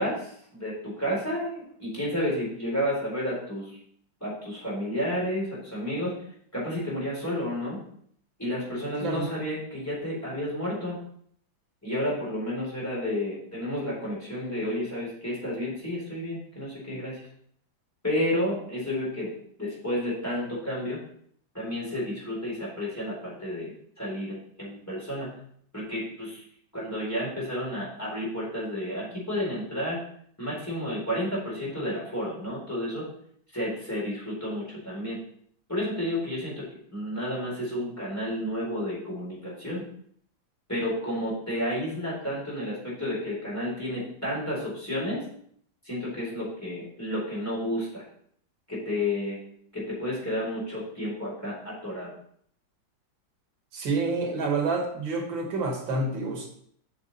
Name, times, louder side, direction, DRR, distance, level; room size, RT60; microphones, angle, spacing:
voice 1, 0.0-3.7 4.2-6.2 6.5-7.8 8.4-11.0 11.8-17.3 18.0-19.3 19.6-21.0 21.5-23.7 24.0-25.4 25.7-26.4 26.7-30.0 30.4-33.1 33.5-35.2 35.7-39.8 40.7-45.3 45.9-48.0 48.7-49.4 49.7-52.1, left 1 dB, 10° left, -6 dB, 3.8 m, -31 dB
voice 2, 53.7-56.5, right 3 dB, 80° right, 2 dB, 2.2 m, -28 dB
8.2 x 6.6 x 4.2 m, 0.63 s
omnidirectional pair, 2.1 m